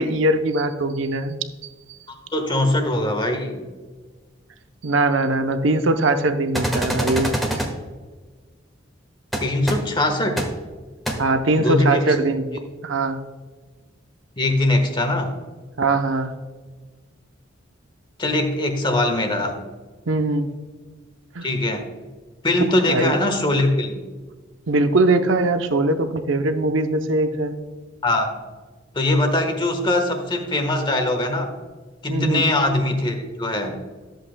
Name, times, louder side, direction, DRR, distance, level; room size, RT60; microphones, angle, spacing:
voice 1, 0.0-1.4 1.6-2.0 4.8-7.3 11.2-13.2 15.8-16.3 20.1-20.5 21.3-21.5 22.8-23.1 24.7-27.6 32.1-32.4, right 2 dB, 70° right, 8 dB, 0.7 m, -21 dB
voice 2, 2.1-3.6 9.4-10.4 11.6-12.0 14.4-15.3 18.2-19.5 21.4-21.8 22.4-24.0 28.0-28.4 28.9-31.5 32.0-33.8, left 1 dB, 25° left, 5 dB, 1.3 m, -21 dB
sound 1, 6.5-7.7 9.3-9.4 9.7-9.8 10.4-10.5 11.1-11.2, right 1 dB, ahead, 1.3 m, -24 dB
13.5 x 7.8 x 2.2 m, 1.4 s
head